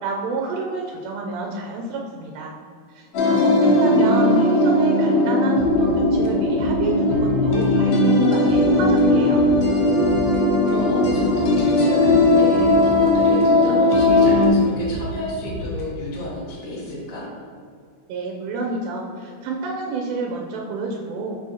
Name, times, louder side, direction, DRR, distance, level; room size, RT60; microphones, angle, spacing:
voice 1, 0.0-2.5 2.9-9.4 18.1-21.4, right 3 dB, 85° right, -1 dB, 2.8 m, -28 dB
sound 1, 3.1-14.5, left 1 dB, 70° left, 2.0 m, -18 dB
sound 2, 5.6-7.7 7.9-8.1 8.5-10.4 10.7-13.6 13.9-16.5, equal, 90° left, 1.6 m, -34 dB
voice 2, 10.7-17.3, left 1 dB, 55° left, -5 dB, 1.3 m, -31 dB
6.8 x 6.2 x 2.9 m, 2.1 s
omnidirectional pair, 4.8 m